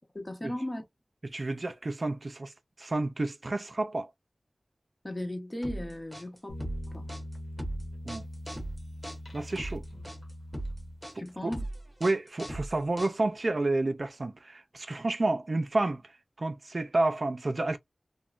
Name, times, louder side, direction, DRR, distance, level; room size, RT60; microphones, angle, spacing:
voice 1, 0.1-0.8 5.0-6.5 6.9-7.1 11.2-11.6, left 1 dB, 25° left, 1.0 m, -36 dB
voice 2, 1.3-2.5 2.8-4.1 8.0-8.2 9.3-9.8 11.4-11.5 12.0-16.0 16.4-17.8, right 2 dB, 50° right, 0.4 m, -30 dB
sound 1, 5.6-13.5, right 1 dB, 5° right, 1.0 m, -39 dB
sound 2, 6.5-11.4, left 1 dB, 65° left, 1.1 m, -42 dB
3.0 x 2.2 x 2.4 m
wide cardioid pair, 80°, 0 cm